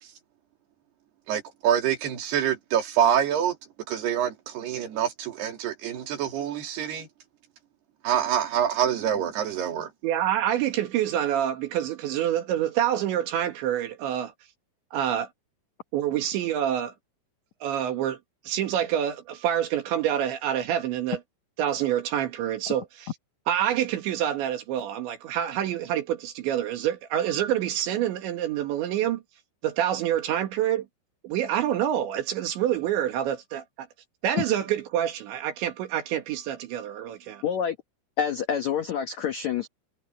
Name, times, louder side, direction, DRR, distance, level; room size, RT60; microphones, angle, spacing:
voice 1, 1.3-3.6 3.9-7.1 8.0-9.9, right 9 dB, 65° right, 4.5 m, -26 dB
voice 2, 10.0-14.3 14.9-15.3 15.9-16.9 17.6-18.2 18.5-21.2 21.6-23.1 23.5-29.2 29.6-30.9 31.2-33.9 34.2-37.4, right 11 dB, 85° right, 4.4 m, -27 dB
voice 3, 37.4-37.8 38.2-39.7, left 8 dB, 75° left, 1.6 m, -27 dB
omnidirectional pair, 5.1 m